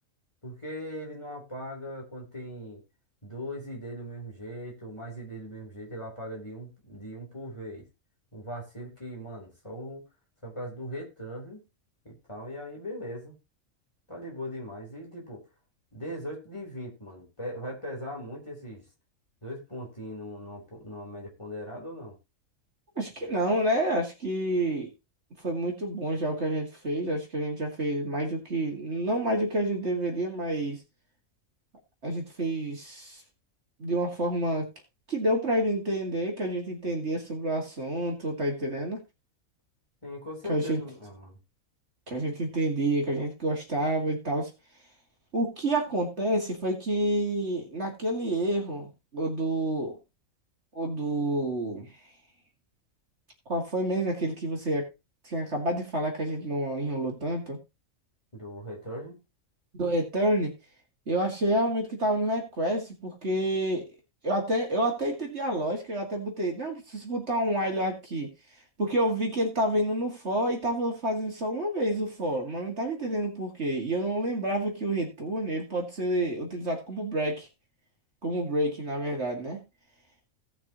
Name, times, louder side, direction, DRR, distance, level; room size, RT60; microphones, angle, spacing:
voice 1, 0.4-2.8 3.2-7.8 8.3-10.0 10.4-11.6 12.0-13.4 14.1-15.4 15.9-18.9 19.4-22.2 40.0-41.4 58.3-59.2, equal, 20° left, -1 dB, 3.9 m, -39 dB
voice 2, 23.0-24.9 25.4-30.8 32.0-33.2 33.8-34.7 35.1-39.0 40.5-40.8 42.1-44.5 45.3-50.0 50.7-51.9 53.5-54.9 55.2-57.6 59.8-60.5 61.1-63.9 64.2-68.3 68.8-77.5 78.2-79.6, right 1 dB, 50° right, 1 dB, 2.6 m, -28 dB
18.0 x 6.0 x 3.0 m, 0.25 s
omnidirectional pair, 1.4 m